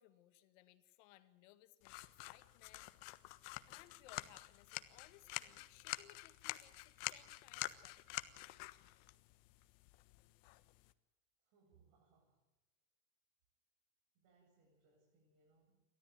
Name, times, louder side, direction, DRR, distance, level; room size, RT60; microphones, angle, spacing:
voice 1, 0.0-2.0 2.3-2.9 3.7-8.3, left 15 dB, 80° left, 9 dB, 2.1 m, -64 dB
sound 1, 1.8-10.9, left 19 dB, 65° left, 1.4 m, -48 dB
voice 2, 11.4-12.5 14.1-15.8, right 4 dB, 60° right, -1 dB, 7.7 m, -73 dB
29.0 x 13.5 x 9.3 m, 1.0 s
supercardioid pair, 135°, 36 cm